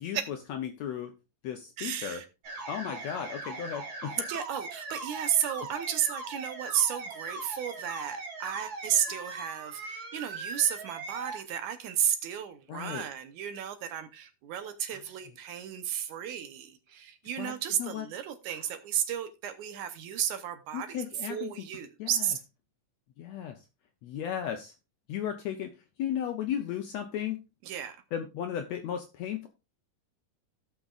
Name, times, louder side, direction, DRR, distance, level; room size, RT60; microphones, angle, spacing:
voice 1, 0.0-1.1 1.4-2.2 2.7-4.3 12.7-13.0 14.9-15.0 17.4-17.5 17.8-18.1 18.5-18.6 20.7-21.5 22.0-22.1 23.2-23.6 24.0-24.7 25.1-25.7 26.0-27.4 28.1-29.5, left 9 dB, 75° left, 1.7 m, -35 dB
voice 2, 1.8-2.3 4.3-21.0 21.3-22.4 27.6-28.0, right 10 dB, 70° right, 2.2 m, -33 dB
sound 1, 2.4-11.4, right 3 dB, 45° right, 1.7 m, -40 dB
17.0 x 6.0 x 2.4 m
omnidirectional pair, 3.8 m